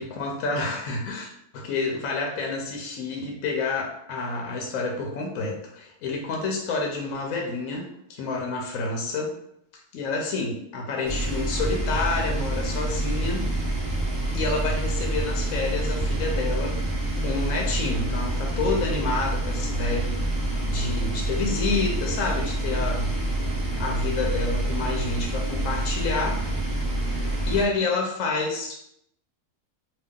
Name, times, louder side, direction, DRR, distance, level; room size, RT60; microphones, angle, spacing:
voice 1, 0.0-9.3 9.9-13.4 14.3-16.8 17.2-20.1 20.4-23.1 23.8-26.4 27.0-27.2 27.5-28.8, left 3 dB, 70° left, 0 dB, 1.0 m, -29 dB
sound 1, 11.0-27.6, right 1 dB, 30° right, 0.4 m, -27 dB
2.8 x 2.4 x 3.5 m, 0.74 s
omnidirectional pair, 1.6 m